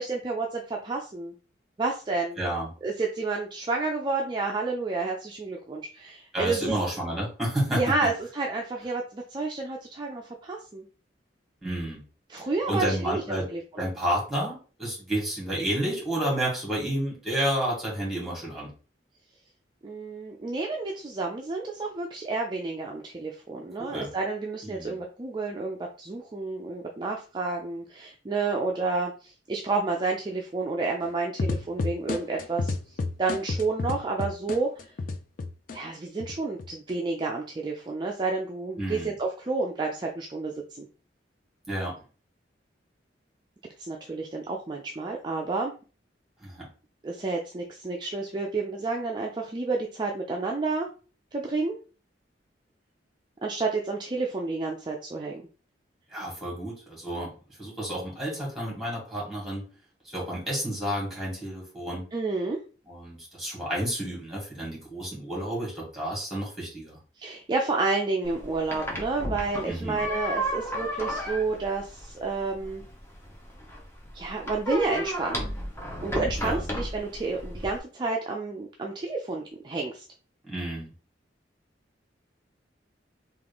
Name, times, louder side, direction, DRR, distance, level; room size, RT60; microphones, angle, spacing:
voice 1, 0.0-1.3 1.8-2.4 2.8-6.7 7.7-10.8 12.3-13.8 19.8-34.9 35.7-40.9 43.8-45.7 47.0-50.9 51.3-51.8 53.4-55.4 62.1-62.6 67.2-72.8 74.1-75.5 76.0-80.0, right 3 dB, 25° right, 0 dB, 0.4 m, -30 dB
voice 2, 2.4-2.7 6.3-7.8 11.6-12.0 12.7-13.5 13.8-18.7 23.8-24.1 24.6-25.0 38.8-39.1 41.7-42.0 46.4-46.6 56.1-57.3 57.6-59.6 60.1-62.0 62.8-67.0 69.6-70.0 76.4-76.7 80.4-80.9, right 1 dB, ahead, -5 dB, 2.0 m, -30 dB
sound 1, 31.4-35.8 36.2-36.9, left 3 dB, 50° left, 0.4 m, -30 dB
sound 2, 68.2-77.8, equal, 15° left, 0.8 m, -34 dB
3.6 x 2.5 x 3.5 m, 0.37 s
head